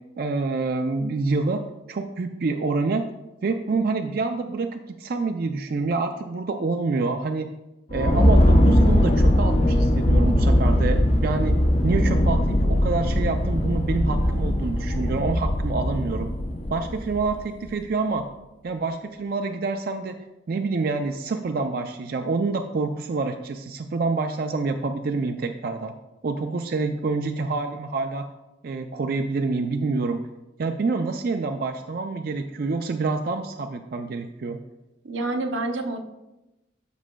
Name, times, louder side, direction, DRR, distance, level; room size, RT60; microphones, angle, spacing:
voice 1, 0.2-1.6 1.9-3.1 3.4-7.5 7.9-11.6 11.8-16.3 16.7-18.2 18.6-20.2 20.5-25.9 26.2-28.3 28.6-30.2 30.6-34.6, right 3 dB, 50° right, 6 dB, 0.4 m, -27 dB
sound 1, 7.9-17.5, left 1 dB, 35° left, 0.6 m, -20 dB
voice 2, 35.0-36.0, right 2 dB, 85° right, 5 dB, 0.8 m, -27 dB
12.5 x 6.2 x 2.2 m, 0.97 s
head